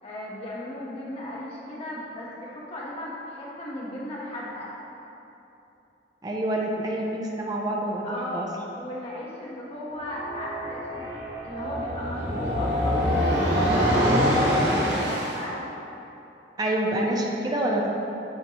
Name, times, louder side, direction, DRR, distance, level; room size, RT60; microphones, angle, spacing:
voice 1, 0.0-4.7 8.0-11.1 11.4-15.6, left 1 dB, 35° left, -6 dB, 1.2 m, -36 dB
voice 2, 6.2-8.1 8.3-8.5 16.6-17.9, right 1 dB, 20° right, -1 dB, 0.6 m, -27 dB
sound 1, 9.9-15.4, equal, 75° right, 1.3 m, -24 dB
8.8 x 4.6 x 3.0 m, 2.9 s
head